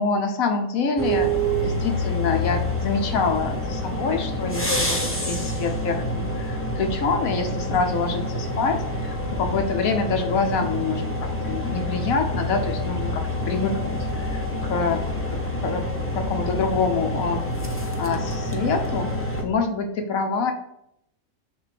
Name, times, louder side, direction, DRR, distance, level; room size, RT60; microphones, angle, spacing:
voice 1, 0.0-1.3 1.6-15.0 15.3-15.8 16.1-17.4 18.0-19.1 19.4-20.5, left 4 dB, 75° left, 6 dB, 1.3 m, -26 dB
sound 1, 1.0-19.4, equal, 15° left, 0.6 m, -27 dB
7.4 x 2.6 x 5.7 m, 0.77 s
omnidirectional pair, 1.5 m